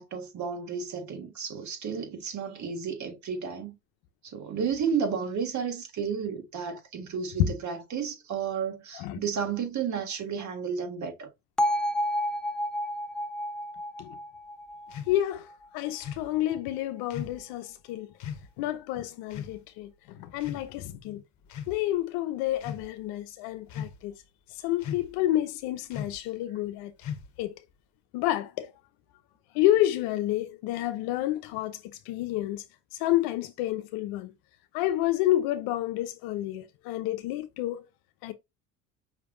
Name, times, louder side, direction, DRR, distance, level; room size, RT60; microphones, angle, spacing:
voice 1, 0.0-3.7 4.2-11.3, right 6 dB, 50° right, 1.6 m, -32 dB
Bell, 11.6-15.6, equal, ahead, 0.6 m, -30 dB
sound 1, 14.9-15.2 16.0-16.3 17.1-17.4 18.2-18.5 19.3-19.6 20.4-20.9 21.5-21.8 22.5-22.9 23.7-24.1 24.8-25.2 25.9-26.2 27.0-27.5, left 8 dB, 50° left, 1.1 m, -38 dB
voice 2, 15.1-15.5 15.7-18.1 18.6-21.2 21.7-24.1 24.5-26.9 27.4-27.5 28.1-28.7 29.5-31.8 32.1-32.6 32.9-34.3 34.7-37.8 38.2-38.3, left 14 dB, 75° left, 0.7 m, -29 dB
5.7 x 3.3 x 2.6 m
supercardioid pair, 75°, 37 cm